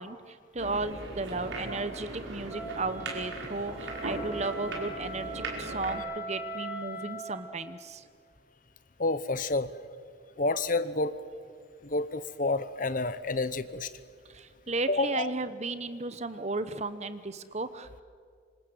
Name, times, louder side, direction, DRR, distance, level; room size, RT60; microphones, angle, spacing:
voice 1, 0.0-8.1 14.3-18.0, right 3 dB, 35° right, 12 dB, 1.0 m, -35 dB
sound 1, 0.6-6.0, right 2 dB, 65° right, 5.1 m, -38 dB
Wind instrument woodwind instrument, 2.5-7.5, right 2 dB, 10° right, 2.7 m, -40 dB
voice 2, 9.0-9.7 10.4-11.1 11.8-13.9 14.9-15.3, left 3 dB, 40° left, 14 dB, 1.0 m, -29 dB
26.0 x 26.0 x 7.9 m, 2.1 s
head